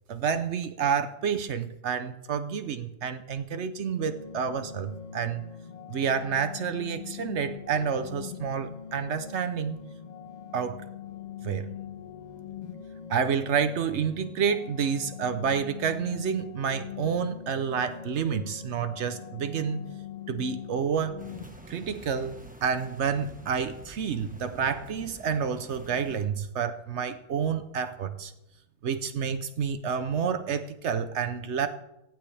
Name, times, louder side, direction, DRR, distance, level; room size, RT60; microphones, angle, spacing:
voice 1, 0.1-5.4 5.9-9.8 10.5-10.8 11.4-11.7 13.1-19.9 20.3-21.1 21.7-28.3 28.8-31.7, right 7 dB, 90° right, 10 dB, 0.6 m, -29 dB
sound 1, 4.0-21.4, left 8 dB, 90° left, 2.1 m, -42 dB
sound 2, 21.2-26.3, right 1 dB, 5° right, 0.8 m, -48 dB
18.5 x 15.5 x 3.4 m, 0.89 s
omnidirectional pair, 2.2 m